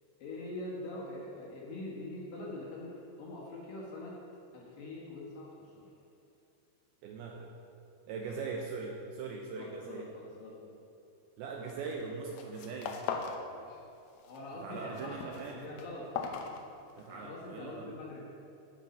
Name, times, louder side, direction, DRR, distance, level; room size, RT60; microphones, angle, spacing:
voice 1, 0.2-4.2 4.5-5.9 8.3-8.4 9.5-10.8 11.6-11.8 13.6-13.8 14.3-16.1 17.1-18.3, left 2 dB, 60° left, -4 dB, 2.8 m, -44 dB
voice 2, 7.0-7.5 8.1-10.1 11.4-13.0 14.6-15.7 17.0-17.9, right 4 dB, 80° right, 0 dB, 2.3 m, -41 dB
sound 1, 11.7-12.0 12.3-13.4 13.7-14.4 14.7-17.2, left 6 dB, 75° left, 2.3 m, -39 dB
14.0 x 5.7 x 5.3 m, 2.7 s
omnidirectional pair, 5.1 m